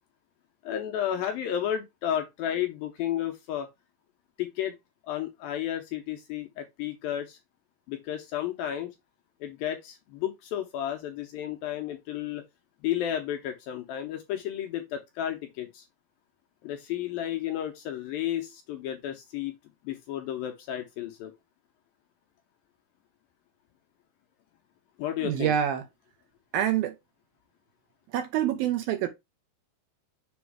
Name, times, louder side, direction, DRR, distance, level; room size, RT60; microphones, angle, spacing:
voice 1, 0.6-3.7 4.4-4.8 5.1-7.4 7.9-8.9 9.4-12.4 12.8-15.9 16.6-19.6 19.8-21.3 25.0-25.5, left 11 dB, 80° left, 2.2 m, -32 dB
voice 2, 25.2-25.9 26.5-27.0 28.1-29.1, right 10 dB, 75° right, 2.4 m, -26 dB
7.0 x 3.0 x 4.7 m
omnidirectional pair, 4.8 m